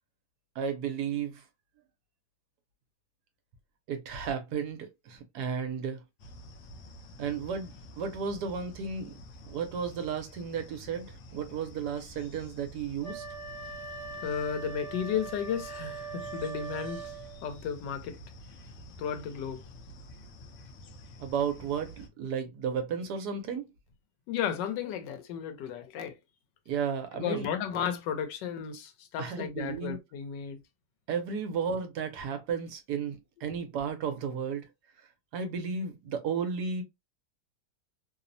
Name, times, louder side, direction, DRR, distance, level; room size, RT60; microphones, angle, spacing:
voice 1, 0.6-1.4 3.9-6.0 7.2-9.2 9.4-13.2 21.2-23.7 26.7-27.5 29.2-30.0 31.1-34.7 35.3-36.8, right 6 dB, 75° right, 1.1 m, -33 dB
sound 1, 6.2-22.1, left 1 dB, 65° left, 0.9 m, -49 dB
Wind instrument woodwind instrument, 13.0-17.5, right 4 dB, 50° right, 1.2 m, -41 dB
voice 2, 14.1-17.1 17.4-18.2 19.0-19.6 24.3-26.1 27.1-30.6, left 8 dB, 85° left, 1.3 m, -34 dB
3.1 x 2.0 x 2.5 m
omnidirectional pair, 1.9 m